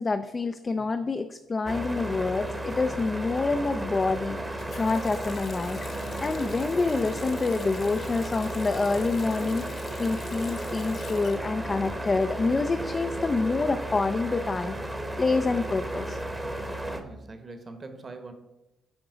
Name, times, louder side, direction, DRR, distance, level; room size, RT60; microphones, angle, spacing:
voice 1, 0.0-5.8 6.2-14.7 15.2-16.2, left 3 dB, 30° left, 8 dB, 0.4 m, -27 dB
voice 2, 0.8-1.1 17.0-18.3, right 3 dB, 35° right, 8 dB, 1.0 m, -44 dB
sound 1, 1.7-17.0, right 1 dB, 10° right, 0.9 m, -34 dB
Water tap faucet, 4.6-12.3 12.6-13.7, left 5 dB, 50° left, 0.9 m, -46 dB
8.7 x 3.7 x 5.0 m, 0.97 s
cardioid pair, 90°, 0 cm